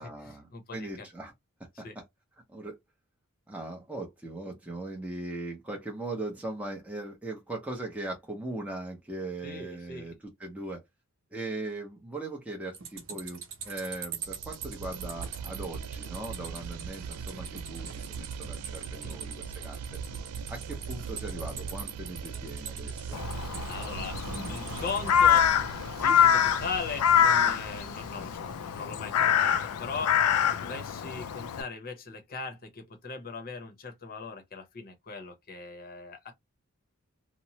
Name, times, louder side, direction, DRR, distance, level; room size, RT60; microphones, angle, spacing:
voice 1, 0.0-1.3 1.8-2.0 2.5-2.8 3.5-10.8 11.3-20.0 20.5-23.2, right 2 dB, 5° right, 0.7 m, -39 dB
voice 2, 0.5-1.1 1.8-2.0 9.4-10.2 19.0-19.4 23.6-24.2 24.5-36.3, left 4 dB, 40° left, 0.8 m, -39 dB
sound 1, 12.7-25.4, right 6 dB, 60° right, 0.8 m, -43 dB
sound 2, 14.2-29.0, right 6 dB, 90° right, 0.4 m, -40 dB
Crow, 23.1-31.6, left 8 dB, 75° left, 0.4 m, -25 dB
2.9 x 2.0 x 2.8 m
head